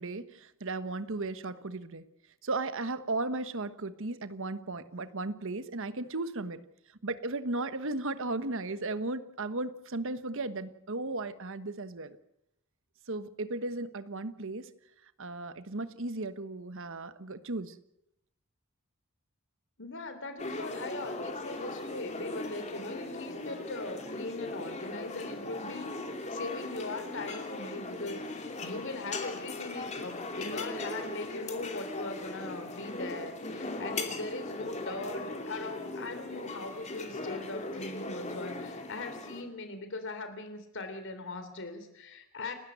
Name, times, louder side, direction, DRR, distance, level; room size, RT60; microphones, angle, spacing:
voice 1, 0.0-2.0 2.4-6.6 7.0-12.2 13.1-14.7 15.2-17.8, right 2 dB, 65° right, 12 dB, 1.2 m, -35 dB
voice 2, 19.8-42.5, left 3 dB, 60° left, 9 dB, 3.5 m, -40 dB
sound 1, 20.4-39.4, left 2 dB, 30° left, 2.8 m, -39 dB
29.5 x 12.5 x 8.0 m, 0.84 s
head